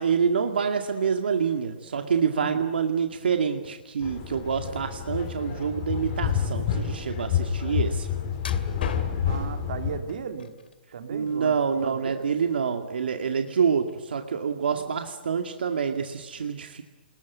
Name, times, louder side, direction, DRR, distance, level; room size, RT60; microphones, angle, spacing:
voice 1, 0.0-8.1 11.1-16.8, right 6 dB, 80° right, 5 dB, 2.1 m, -27 dB
voice 2, 2.3-2.6 9.3-10.5 10.9-12.3 14.7-14.9, right 6 dB, 60° right, 5 dB, 3.0 m, -36 dB
sound 1, 4.0-10.0, left 8 dB, 30° left, 4.1 m, -29 dB
sound 2, 8.4-9.4 10.1-10.8 11.2-12.1 12.4-12.6 13.2-13.3, left 6 dB, 80° left, 2.3 m, -41 dB
28.0 x 20.5 x 9.4 m, 1.3 s
hypercardioid pair, 170°, 5 cm